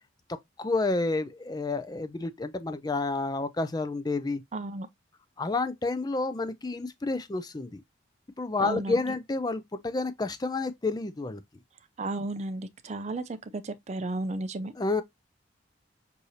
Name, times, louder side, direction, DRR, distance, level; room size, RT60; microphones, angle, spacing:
voice 1, 0.3-4.4 5.4-7.8 8.4-11.4 14.8-15.0, left 3 dB, 20° left, 0.4 m, -30 dB
voice 2, 4.5-4.9 8.6-8.9 12.0-14.7, right 2 dB, 35° right, 0.4 m, -33 dB
6.4 x 2.7 x 2.7 m
head